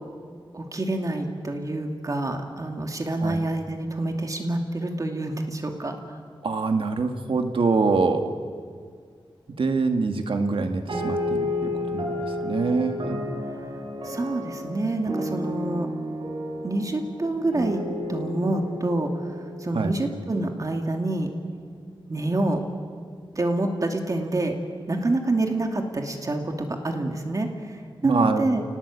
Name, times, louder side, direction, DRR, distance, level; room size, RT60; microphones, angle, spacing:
voice 1, 0.5-6.2 14.0-15.9 16.6-17.8 18.1-19.1 19.6-21.3 22.1-22.6 23.4-24.6 24.9-28.6, right 2 dB, 40° right, 3 dB, 2.5 m, -27 dB
voice 2, 6.4-8.3 9.6-12.1 12.4-13.2 19.7-19.9 28.0-28.5, right 4 dB, 80° right, 5 dB, 2.0 m, -24 dB
sound 1, 10.9-20.6, left 1 dB, 65° right, 5.5 m, -32 dB
29.0 x 19.0 x 8.5 m, 2.1 s
wide cardioid pair, 115°, 9 cm